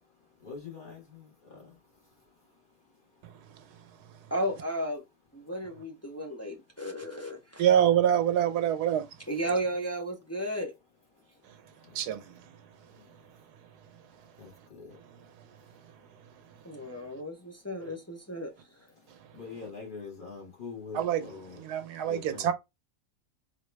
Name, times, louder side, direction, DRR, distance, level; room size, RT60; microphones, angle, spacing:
voice 1, 0.4-1.7 12.9-13.1 14.4-14.9 19.3-21.6 22.0-22.5, left 5 dB, 35° left, 1.8 m, -44 dB
voice 2, 4.3-5.0 5.3-7.7 9.3-10.7 16.6-18.5, right 1 dB, 15° left, 0.5 m, -34 dB
voice 3, 7.6-9.0 11.9-12.2 20.9-22.5, right 10 dB, 85° right, 1.3 m, -25 dB
3.9 x 3.0 x 3.2 m
omnidirectional pair, 1.7 m